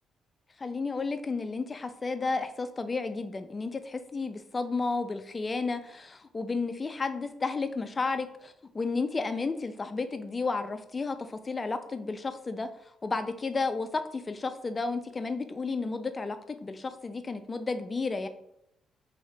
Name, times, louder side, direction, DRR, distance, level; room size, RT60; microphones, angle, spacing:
voice 1, 0.6-12.7 13.0-18.3, left 4 dB, 30° left, 9 dB, 0.3 m, -32 dB
2.7 x 2.7 x 3.2 m, 0.77 s
cardioid pair, 90°, 0 cm